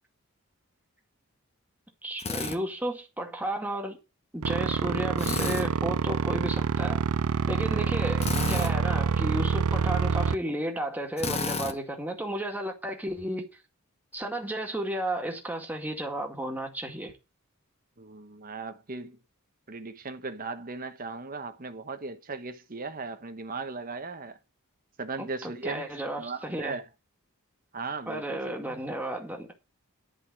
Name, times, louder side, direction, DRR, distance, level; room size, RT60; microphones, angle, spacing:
voice 1, 2.0-4.0 4.3-7.0 7.5-13.4 14.1-17.1 25.2-26.7 28.1-29.5, right 1 dB, 10° right, 2.1 m, -33 dB
Drill, 2.2-2.6 5.2-5.7 8.2-8.7 11.2-11.8, left 3 dB, 30° left, 1.0 m, -31 dB
sound 1, 4.4-10.3, right 5 dB, 70° right, 0.5 m, -27 dB
voice 2, 18.0-19.2 19.7-24.4 25.0-26.8 27.7-28.8, right 4 dB, 40° right, 1.2 m, -37 dB
11.0 x 5.3 x 7.7 m
head